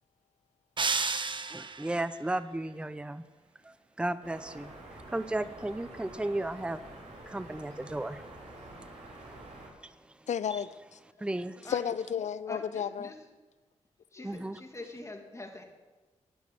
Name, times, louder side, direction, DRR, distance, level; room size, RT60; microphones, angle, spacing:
sound 1, 0.8-2.0, right 4 dB, 40° right, 0.9 m, -31 dB
voice 1, 1.5-3.2 3.6-4.7 5.1-6.8 7.3-8.2 9.8-9.9 11.2-11.7 14.2-14.6, right 1 dB, 10° right, 0.6 m, -34 dB
sound 2, 4.2-9.7, right 2 dB, 60° right, 3.6 m, -48 dB
voice 2, 10.3-11.0 11.6-13.1 14.2-14.3, left 8 dB, 65° left, 0.5 m, -33 dB
voice 3, 12.5-13.1 14.1-15.6, left 2 dB, 25° left, 2.2 m, -44 dB
11.5 x 6.1 x 9.1 m
supercardioid pair, 50°, 13 cm